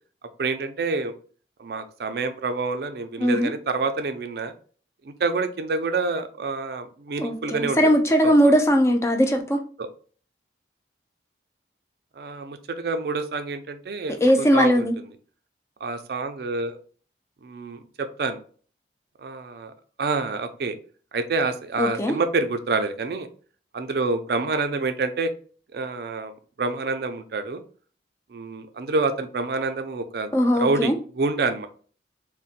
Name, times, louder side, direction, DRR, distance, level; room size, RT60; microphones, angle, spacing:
voice 1, 0.4-1.1 1.6-4.5 5.0-7.8 8.2-8.5 9.8-9.9 12.2-14.9 15.8-16.8 17.4-18.4 19.2-19.7 20.0-20.8 21.1-23.3 23.7-25.3 25.7-27.6 28.3-31.7, right 3 dB, 60° right, 9 dB, 0.4 m, -27 dB
voice 2, 3.2-3.5 7.2-9.6 14.2-14.9 21.8-22.2 30.3-30.9, equal, 15° left, 5 dB, 0.4 m, -19 dB
3.9 x 2.1 x 2.4 m, 0.42 s
head